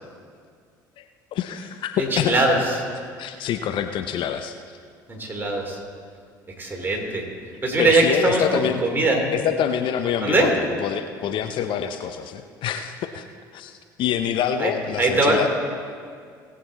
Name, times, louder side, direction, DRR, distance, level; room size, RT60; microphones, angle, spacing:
voice 1, 1.3-2.4 3.2-4.6 7.8-8.8 9.3-13.3 13.5-15.5, left 9 dB, 55° left, 8 dB, 0.6 m, -26 dB
voice 2, 2.0-2.6 5.1-5.8 6.6-7.2 7.6-9.2 10.2-10.5 14.6-14.7 15.0-15.4, right 2 dB, 20° right, 0 dB, 3.1 m, -21 dB
18.5 x 8.2 x 4.1 m, 2.1 s
hypercardioid pair, 60°, 10 cm